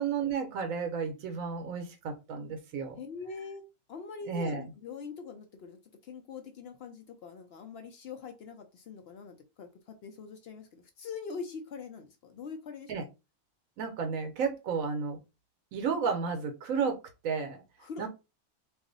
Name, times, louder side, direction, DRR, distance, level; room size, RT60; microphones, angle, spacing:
voice 1, 0.0-3.0 4.3-4.6 12.9-13.0 13.8-15.2 15.7-17.6 18.0-18.1, right 5 dB, 75° right, 5 dB, 1.0 m, -32 dB
voice 2, 3.0-3.6 3.9-5.8 6.0-12.9 17.8-18.1, left 5 dB, 65° left, 5 dB, 0.6 m, -43 dB
2.5 x 2.4 x 3.8 m, 0.28 s
omnidirectional pair, 1.5 m